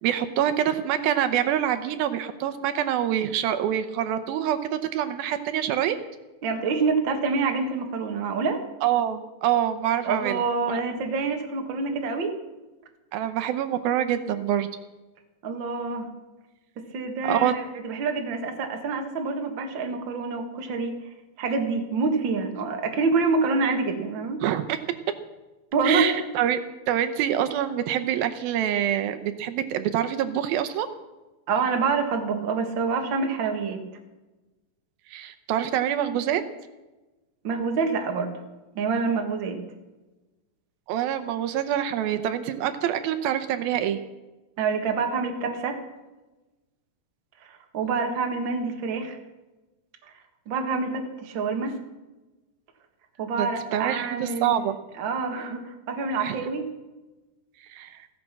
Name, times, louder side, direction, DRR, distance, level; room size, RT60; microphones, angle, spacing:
voice 1, 0.0-6.0 8.8-10.8 13.1-14.7 17.2-17.5 24.4-24.8 25.8-26.6 26.9-30.9 35.1-36.4 40.9-44.0 53.4-54.7 56.2-56.4 57.7-58.0, right 10 dB, 80° right, 10 dB, 2.6 m, -26 dB
voice 2, 6.4-8.6 10.0-12.4 15.4-16.1 16.8-20.9 21.4-24.4 25.7-26.2 31.5-33.8 37.4-38.3 38.8-39.6 44.6-45.8 47.4-49.2 50.5-51.8 53.2-54.6 55.0-56.6, right 4 dB, 40° right, 4 dB, 1.9 m, -27 dB
15.5 x 15.0 x 6.0 m, 1.1 s
omnidirectional pair, 4.3 m